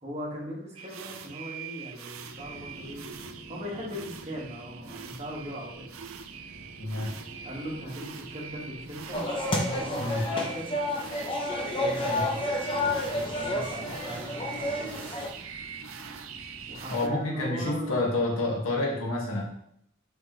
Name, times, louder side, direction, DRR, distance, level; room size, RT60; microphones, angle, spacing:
voice 1, 0.0-3.1 3.5-5.9 7.4-10.7 11.7-15.0 16.7-18.1, equal, 30° right, -4 dB, 1.7 m, -39 dB
sound 1, 0.8-17.1, right 7 dB, 80° right, 0.5 m, -43 dB
sound 2, 2.4-17.1, right 1 dB, 55° right, 1.1 m, -48 dB
voice 2, 6.8-7.2 10.0-10.2 12.0-12.2 16.9-19.4, left 2 dB, 85° left, -2 dB, 1.8 m, -29 dB
sound 3, 9.1-15.3, left 1 dB, 25° left, 0.9 m, -30 dB
5.9 x 5.3 x 3.1 m, 0.70 s
head